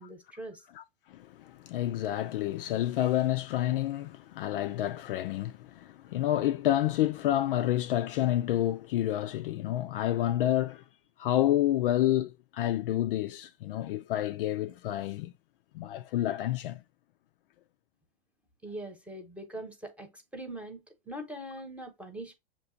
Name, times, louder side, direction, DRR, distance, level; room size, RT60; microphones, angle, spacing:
voice 1, 0.0-0.6 18.6-20.8 21.1-22.3, right 1 dB, 5° right, 1.0 m, -42 dB
voice 2, 0.8-10.8 11.2-15.3 15.7-16.8, left 13 dB, 55° left, 0.5 m, -29 dB
6.7 x 3.0 x 2.7 m
hypercardioid pair, 125°, 33 cm